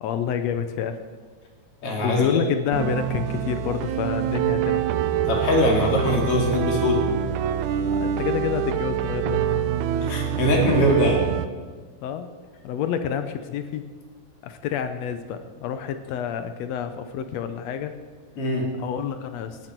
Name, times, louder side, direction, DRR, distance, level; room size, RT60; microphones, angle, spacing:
voice 1, 0.0-1.0 2.0-4.9 7.8-9.4 12.0-12.3 12.6-13.8 14.4-17.9 18.8-19.6, left 8 dB, 80° left, 9 dB, 1.5 m, -28 dB
voice 2, 1.8-2.4 5.2-7.0 10.0-11.2 18.4-18.6, equal, 45° left, -1 dB, 3.5 m, -22 dB
sound 1, 2.7-11.5, right 9 dB, 75° right, 1.9 m, -25 dB
18.5 x 12.0 x 4.5 m, 1.5 s
omnidirectional pair, 3.9 m